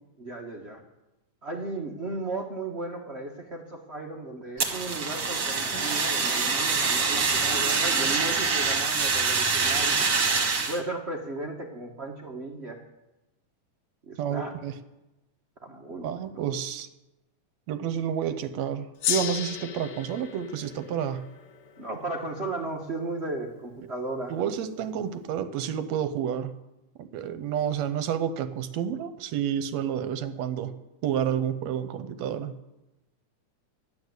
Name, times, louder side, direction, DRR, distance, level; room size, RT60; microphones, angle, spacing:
voice 1, 0.2-0.8 1.4-10.1 10.7-12.8 14.1-14.6 15.6-16.4 21.8-24.3, right 2 dB, 90° right, 0 dB, 0.5 m, -35 dB
Fire, 4.6-10.8, right 4 dB, 40° right, 1.8 m, -25 dB
voice 2, 14.2-14.7 16.0-16.9 17.7-21.2 24.3-26.5 27.0-30.7 31.0-32.5, right 8 dB, 70° right, 11 dB, 1.8 m, -30 dB
Gong, 19.0-23.8, left 9 dB, 70° left, 2.0 m, -35 dB
12.5 x 9.8 x 8.0 m, 0.98 s
omnidirectional pair, 3.5 m